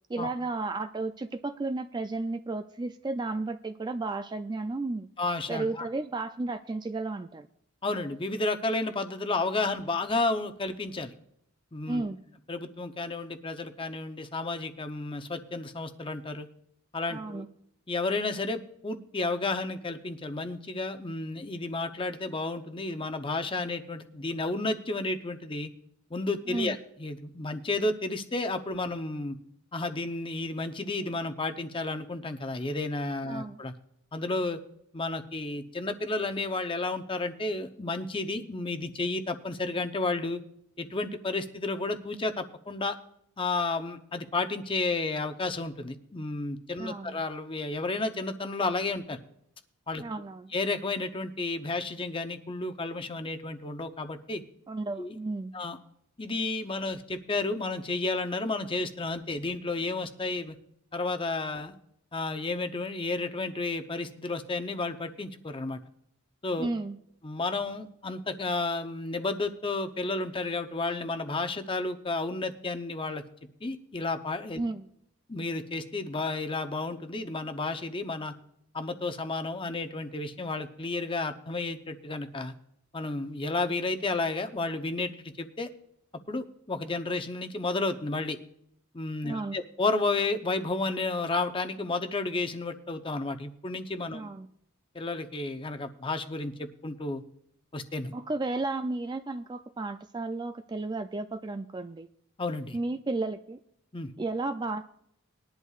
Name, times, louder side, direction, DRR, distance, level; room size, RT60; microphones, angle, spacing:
voice 1, 0.1-5.1 5.5-7.5 11.9-12.2 17.1-17.5 26.5-26.8 33.3-33.6 46.8-47.2 50.0-50.5 54.7-55.5 66.6-67.0 74.6-74.9 89.2-89.6 94.1-94.5 98.1-102.1 102.7-103.6 104.2-104.8, right 2 dB, 20° right, 8 dB, 0.3 m, -33 dB
voice 2, 5.2-5.9 7.8-11.1 11.7-12.0 12.5-16.5 16.9-17.4 17.9-25.7 26.1-29.4 29.7-33.7 34.1-34.6 34.9-40.4 40.8-43.0 43.4-49.2 49.9-50.0 50.5-54.4 55.0-55.2 55.5-55.8 56.2-60.6 60.9-61.7 62.1-65.8 66.4-66.7 67.2-73.2 73.6-74.6 75.3-78.3 78.7-82.5 82.9-85.7 86.3-88.4 88.9-94.3 94.9-97.2 97.7-98.1 102.4-102.8 103.9-104.1, left 3 dB, 25° left, 7 dB, 0.7 m, -32 dB
20.0 x 11.0 x 2.4 m, 0.73 s
head